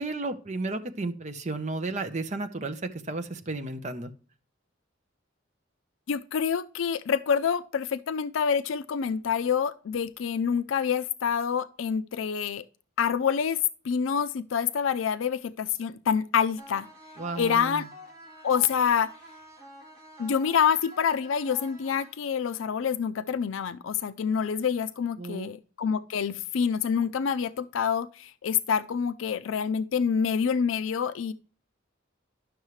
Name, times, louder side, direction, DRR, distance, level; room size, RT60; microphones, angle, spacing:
voice 1, 0.0-2.8 3.1-4.1 17.2-17.9 25.2-25.5, right 2 dB, 35° right, 0.9 m, -33 dB
voice 2, 6.1-12.6 13.0-16.9 17.4-17.9 18.4-19.1 20.2-31.3, left 7 dB, 80° left, 0.4 m, -27 dB
sound 1, 16.6-22.6, right 1 dB, 20° right, 3.1 m, -48 dB
11.0 x 6.3 x 3.2 m
head